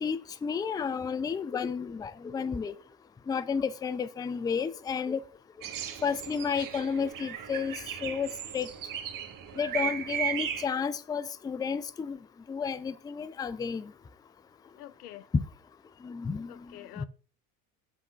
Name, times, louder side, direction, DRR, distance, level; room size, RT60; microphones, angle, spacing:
voice 1, 0.0-2.7 3.3-5.2 6.0-7.7 8.0-8.7 9.6-12.2 12.5-13.9 16.0-16.5 17.0-17.1, left 6 dB, 10° left, 0.3 m, -32 dB
sound 1, 5.6-10.7, right 9 dB, 45° right, 1.2 m, -36 dB
voice 2, 9.5-10.0 14.6-15.3 16.5-17.1, left 13 dB, 90° left, 0.6 m, -47 dB
8.5 x 3.7 x 6.0 m
hypercardioid pair, 75°, 44 cm